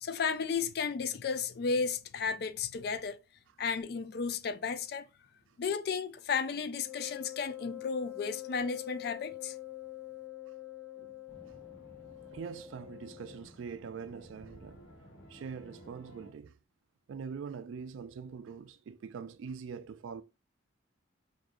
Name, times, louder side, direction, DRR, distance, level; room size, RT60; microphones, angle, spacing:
voice 1, 0.0-3.2 3.6-5.1 5.6-9.6, left 5 dB, 55° left, 0.3 m, -33 dB
Wind instrument woodwind instrument, 6.8-13.5, left 16 dB, 5° right, 1.0 m, -45 dB
sound 1, 11.3-16.3, equal, 80° left, 1.1 m, -55 dB
voice 2, 12.3-14.8 15.3-16.6 17.1-20.2, right 6 dB, 80° right, 0.3 m, -43 dB
4.7 x 2.6 x 2.4 m
head